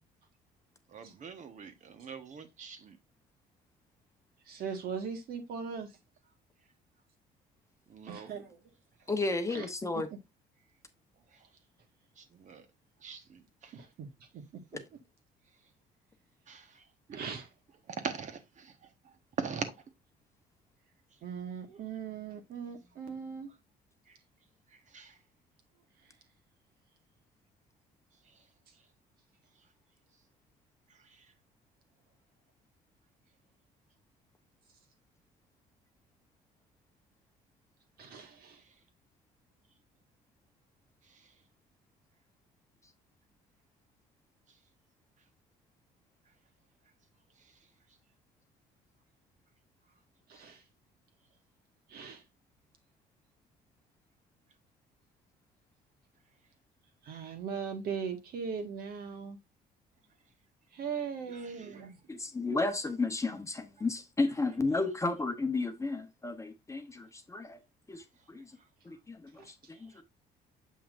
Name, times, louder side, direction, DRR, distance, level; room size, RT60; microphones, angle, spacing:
voice 1, 0.9-3.0 4.5-4.6 7.9-8.3 11.3-11.6 12.2-12.7 13.0-13.8 16.5-16.9 17.9-19.8 21.1-21.2 24.1-24.2 24.7-25.2 28.2-28.5 28.7-28.9 29.5-29.7 30.9-31.3 38.6-38.8 41.0-41.4 44.5-44.6 47.3-47.7 57.1-57.3 61.3-61.8 63.8-63.9 68.2-68.3 68.5-69.0 69.7-70.0, right 6 dB, 45° right, 1.4 m, -44 dB
voice 2, 4.5-5.9 8.1-8.6 9.5-10.0 13.7-14.8 17.1-17.5 21.2-23.5 26.0-26.1 38.0-38.6 50.3-50.6 51.9-52.2 57.0-59.4 60.7-62.0 69.4-69.5, right 6 dB, 65° right, 1.8 m, -40 dB
voice 3, 9.1-10.1 62.1-67.6 67.9-68.5 68.8-69.5 69.8-70.0, left 3 dB, 15° left, 1.0 m, -33 dB
7.3 x 5.6 x 2.6 m
cardioid pair, 110°, 17 cm